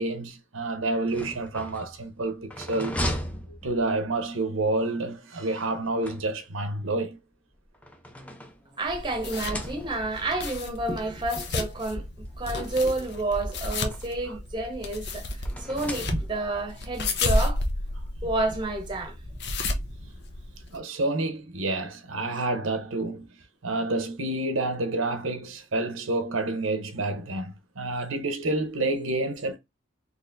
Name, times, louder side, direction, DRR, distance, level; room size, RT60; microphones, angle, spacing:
voice 1, 0.0-3.0 3.6-7.2 14.3-14.4 20.7-23.3 23.6-29.6, right 2 dB, 90° right, 0.9 m, -29 dB
sound 1, 0.9-4.2 5.5-6.7 7.5-8.9 9.3-10.2 11.2-11.3 11.6-11.7 12.9-14.2 15.4-16.6, equal, 5° left, 0.6 m, -37 dB
sound 2, 8.8-20.8, left 2 dB, 60° left, 0.8 m, -32 dB
voice 2, 8.8-12.0 12.4-15.2 15.7-17.6 18.2-19.1, right 2 dB, 25° right, 1.0 m, -29 dB
4.1 x 3.2 x 2.6 m
head